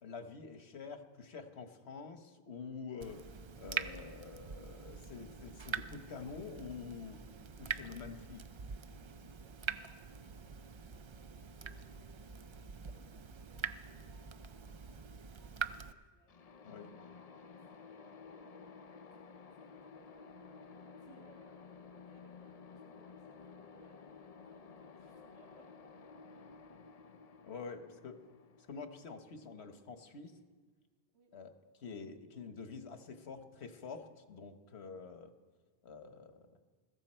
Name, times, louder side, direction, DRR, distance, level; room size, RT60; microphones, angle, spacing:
voice 1, 0.0-7.3 7.6-8.4 16.6-16.9 27.4-28.2 28.7-30.4 31.3-31.5 31.8-35.3 35.8-36.6, left 5 dB, 85° left, 7 dB, 1.4 m, -47 dB
Water tap faucet / Drip, 3.0-15.9, right 6 dB, 45° right, 0.3 m, -44 dB
voice 2, 9.1-12.3 12.8-15.1 15.4-16.4 17.0-25.8 27.8-27.9 28.4-28.5 31.1-31.3, right 2 dB, 75° right, -1 dB, 2.2 m, -67 dB
sound 1, 16.3-30.0, left 5 dB, 45° left, 0.6 m, -54 dB
21.5 x 14.5 x 4.4 m, 1.4 s
omnidirectional pair, 1.1 m